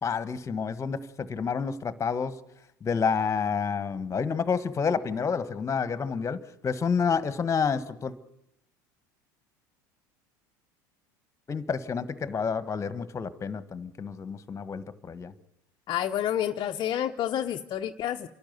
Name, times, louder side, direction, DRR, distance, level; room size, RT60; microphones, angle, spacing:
voice 1, 0.0-2.3 2.8-8.1 11.5-15.3, left 6 dB, 25° left, 14 dB, 1.5 m, -29 dB
voice 2, 15.9-18.3, left 11 dB, 45° left, 5 dB, 0.9 m, -29 dB
28.5 x 12.0 x 9.5 m, 0.79 s
hypercardioid pair, 85°, 11 cm